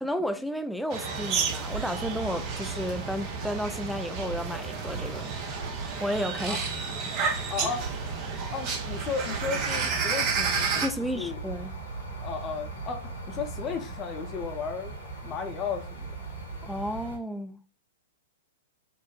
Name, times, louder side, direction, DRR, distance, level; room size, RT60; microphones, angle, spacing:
voice 1, 0.0-5.3 6.0-6.6 7.1-7.2 10.8-11.8 16.6-17.6, equal, ahead, 0.3 m, -32 dB
sound 1, 0.9-17.2, right 3 dB, 80° left, 1.5 m, -38 dB
sound 2, 0.9-10.9, right 5 dB, 35° right, 0.6 m, -32 dB
voice 2, 7.5-7.8 8.5-10.8 11.2-11.4 12.2-15.0 15.2-16.1, left 5 dB, 30° left, 0.7 m, -34 dB
5.9 x 2.0 x 2.4 m
figure-of-eight pair, 100°, 0 cm